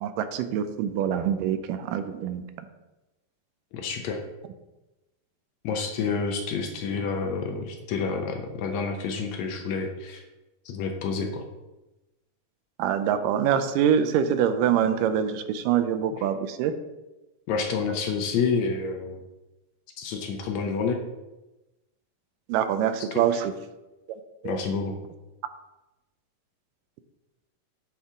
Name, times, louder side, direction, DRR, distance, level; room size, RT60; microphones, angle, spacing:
voice 1, 0.0-2.4 12.8-16.7 22.5-23.5 24.4-24.6, right 9 dB, 80° right, 9 dB, 2.1 m, -25 dB
voice 2, 3.7-4.2 5.6-10.2 10.6-11.4 17.5-19.2 20.0-21.0 24.4-24.9, left 5 dB, 80° left, 4 dB, 1.6 m, -29 dB
11.5 x 4.4 x 3.7 m, 1.0 s
omnidirectional pair, 4.0 m